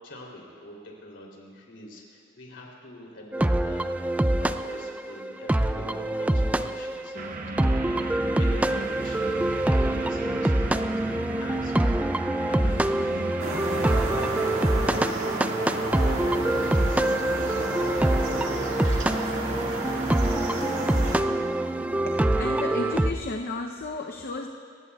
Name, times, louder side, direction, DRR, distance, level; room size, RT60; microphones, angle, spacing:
voice 1, 0.0-3.8 4.4-13.3 14.0-17.7, left 1 dB, 65° left, -2 dB, 3.1 m, -44 dB
sound 1, 3.3-23.1, right 1 dB, 5° right, 0.3 m, -25 dB
sound 2, 7.1-18.6, right 2 dB, 45° right, 1.0 m, -37 dB
sound 3, 13.4-21.2, right 2 dB, 80° right, 2.0 m, -32 dB
voice 2, 22.1-24.5, left 3 dB, 50° left, 2 dB, 0.7 m, -33 dB
28.5 x 16.5 x 2.3 m, 2.3 s
head